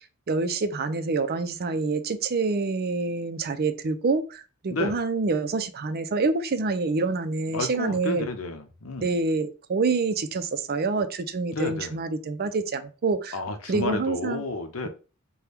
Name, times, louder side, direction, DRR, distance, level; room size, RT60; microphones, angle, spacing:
voice 1, 0.3-8.3 9.0-13.4 13.7-14.4, right 3 dB, 45° right, 0.5 m, -27 dB
voice 2, 7.5-9.2 11.5-12.0 13.3-14.9, left 2 dB, 70° left, 0.7 m, -31 dB
5.8 x 2.3 x 3.4 m
head